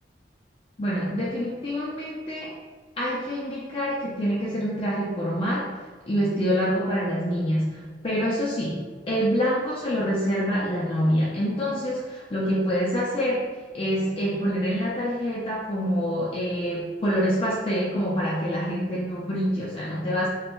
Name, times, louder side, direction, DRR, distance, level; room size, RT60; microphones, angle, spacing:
voice 1, 0.8-2.5 3.0-5.7 6.1-13.5 13.7-20.3, equal, 30° left, -6 dB, 0.4 m, -26 dB
3.1 x 2.1 x 3.0 m, 1.4 s
head